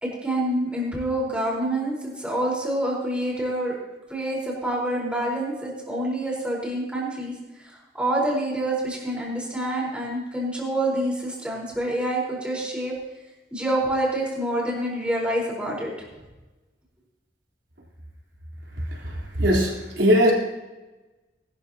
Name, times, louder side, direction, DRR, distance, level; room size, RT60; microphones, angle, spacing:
voice 1, 0.0-3.8 4.1-7.3 7.9-12.9 13.5-15.9, right 1 dB, 5° right, -4 dB, 4.4 m, -27 dB
voice 2, 19.4-20.3, equal, 85° right, -2 dB, 3.7 m, -20 dB
21.0 x 12.5 x 2.9 m, 1.1 s
head